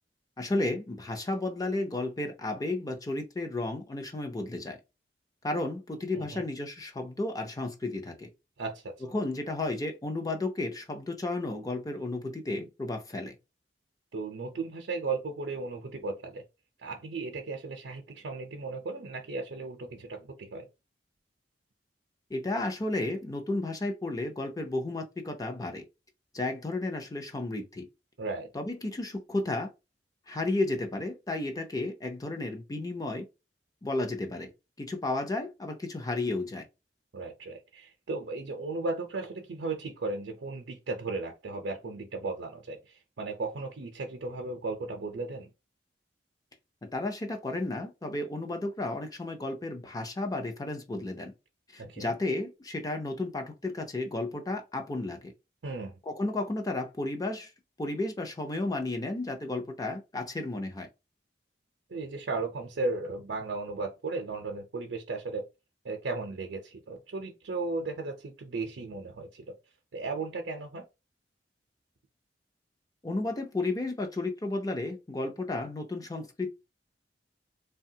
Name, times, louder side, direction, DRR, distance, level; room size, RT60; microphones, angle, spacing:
voice 1, 0.4-4.8 5.4-8.3 9.1-13.3 22.3-25.8 26.3-27.9 28.5-29.7 30.3-33.3 33.8-34.5 34.8-36.6 46.8-51.3 51.7-55.3 56.1-57.5 57.8-60.9 73.0-76.5, left 2 dB, 20° left, 0.5 m, -33 dB
voice 2, 6.1-6.5 8.6-8.9 14.1-16.4 16.8-20.7 28.2-28.5 37.1-45.5 51.8-52.1 55.6-55.9 61.9-65.5 65.8-69.5 69.9-70.9, right 3 dB, 70° right, 0.6 m, -35 dB
3.2 x 2.2 x 2.7 m
head